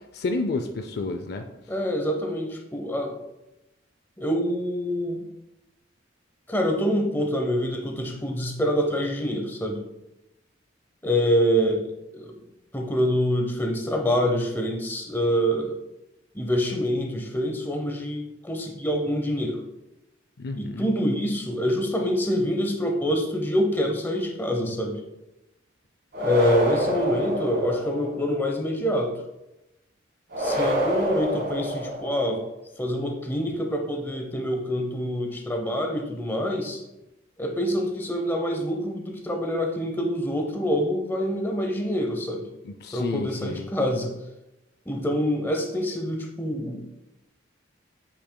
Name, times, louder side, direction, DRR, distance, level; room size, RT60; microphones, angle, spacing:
voice 1, 0.1-1.5 20.4-20.9 27.1-27.2 42.6-43.7, left 3 dB, 50° left, 6 dB, 0.4 m, -30 dB
voice 2, 1.7-3.2 4.2-5.3 6.5-9.8 11.0-11.9 12.1-12.4 12.7-15.7 16.3-19.6 20.5-25.0 26.2-29.1 30.4-32.4 32.8-36.8 37.4-42.4 42.9-44.1 44.9-46.8, equal, 10° left, 2 dB, 0.7 m, -26 dB
sound 1, 26.1-28.2 30.3-32.4, equal, 50° right, 1.5 m, -27 dB
8.5 x 5.9 x 2.2 m, 0.94 s
head